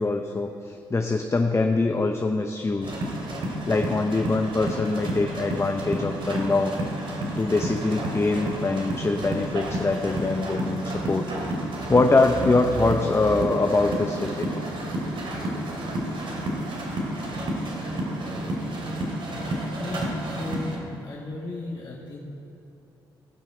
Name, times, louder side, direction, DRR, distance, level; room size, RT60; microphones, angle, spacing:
voice 1, 0.0-2.9 3.7-6.8 7.4-11.3 11.9-14.5, left 3 dB, 25° left, 4 dB, 0.8 m, -23 dB
sound 1, 2.8-20.8, right 1 dB, 55° right, 2.6 m, -30 dB
voice 2, 19.8-22.2, left 2 dB, 45° left, -6 dB, 2.0 m, -36 dB
17.5 x 6.1 x 5.0 m, 2.8 s
hypercardioid pair, 45°, 10 cm